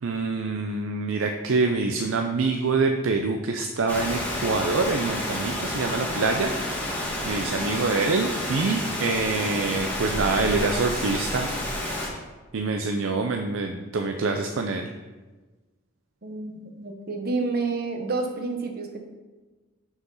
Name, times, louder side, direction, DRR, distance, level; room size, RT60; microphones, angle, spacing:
voice 1, 0.0-11.5 12.5-14.9, right 3 dB, 80° right, 4 dB, 0.5 m, -26 dB
Rain, 3.9-12.1, left 1 dB, 10° left, 1.4 m, -30 dB
voice 2, 16.2-19.0, right 3 dB, 50° right, 4 dB, 0.9 m, -29 dB
6.5 x 4.9 x 5.5 m, 1.3 s
head